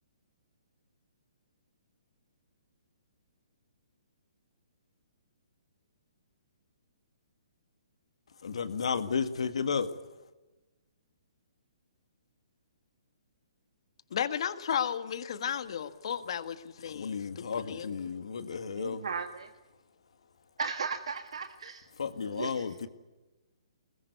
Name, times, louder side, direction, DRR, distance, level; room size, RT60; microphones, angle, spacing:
voice 1, 8.4-9.9 16.9-19.0 22.0-22.9, left 6 dB, 75° left, 2.0 m, -33 dB
voice 2, 14.1-18.1, left 8 dB, 60° left, 1.6 m, -34 dB
voice 3, 18.8-19.5 20.6-21.9 22.2-22.9, right 5 dB, 75° right, 1.7 m, -36 dB
21.0 x 21.0 x 9.5 m
hypercardioid pair, 150°, 3 cm